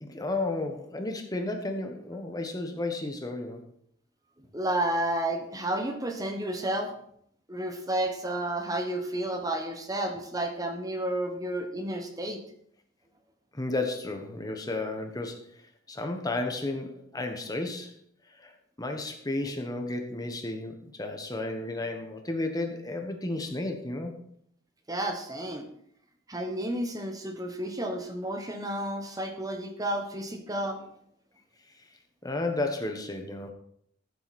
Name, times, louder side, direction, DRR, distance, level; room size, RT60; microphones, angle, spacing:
voice 1, 0.0-3.6 13.5-15.4 15.9-17.9 18.4-18.5 18.8-24.1 32.2-33.5, left 2 dB, 20° left, 4 dB, 1.2 m, -32 dB
voice 2, 4.5-6.9 7.5-12.4 24.9-25.7 26.3-30.9, right 1 dB, 20° right, 4 dB, 1.1 m, -31 dB
14.0 x 7.8 x 4.2 m, 0.67 s
head